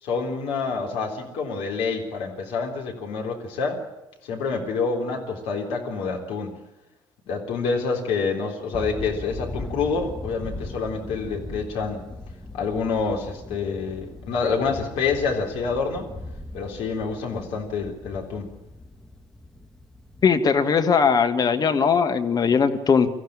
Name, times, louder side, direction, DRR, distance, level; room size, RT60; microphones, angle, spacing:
voice 1, 0.0-3.8 4.2-6.6 7.3-12.1 12.5-16.1 16.5-18.5, left 4 dB, 60° left, 1 dB, 3.6 m, -27 dB
sound 1, 8.7-20.4, left 2 dB, 5° left, 2.0 m, -39 dB
voice 2, 20.2-23.1, left 6 dB, 40° left, 7 dB, 1.7 m, -19 dB
24.0 x 14.5 x 8.9 m, 1.0 s
figure-of-eight pair, 55°, 11 cm